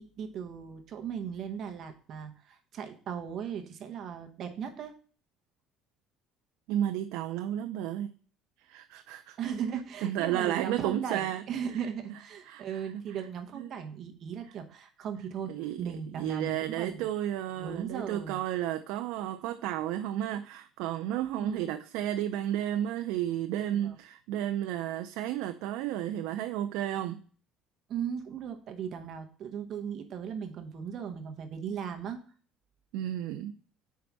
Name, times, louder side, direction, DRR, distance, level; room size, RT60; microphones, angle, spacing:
voice 1, 0.0-4.9 9.4-17.0 17.6-18.4 21.4-21.8 23.7-23.9 27.9-32.2, right 7 dB, 45° right, 0.8 m, -37 dB
voice 2, 6.7-8.1 8.7-9.4 10.0-11.4 12.5-13.0 13.5-13.7 15.5-27.2 32.9-33.6, right 12 dB, 80° right, 0.4 m, -32 dB
5.1 x 4.7 x 5.9 m
cardioid pair, 145°, 0 cm